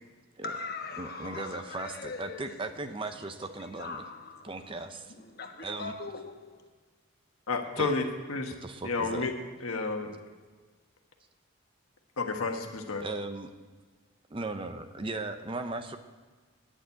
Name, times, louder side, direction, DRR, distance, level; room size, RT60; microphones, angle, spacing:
voice 1, 0.4-4.8 5.1-6.7, left 4 dB, 45° left, 1.2 m, -42 dB
voice 2, 1.0-4.0 4.4-5.1 5.6-5.9 7.8-7.9 8.6-9.3 13.0-13.5 14.3-16.0, right 2 dB, 25° right, 0.6 m, -37 dB
voice 3, 7.5-8.5 8.8-9.3 9.6-10.1 12.2-13.1, left 3 dB, 85° left, 1.3 m, -31 dB
10.0 x 7.1 x 9.2 m
head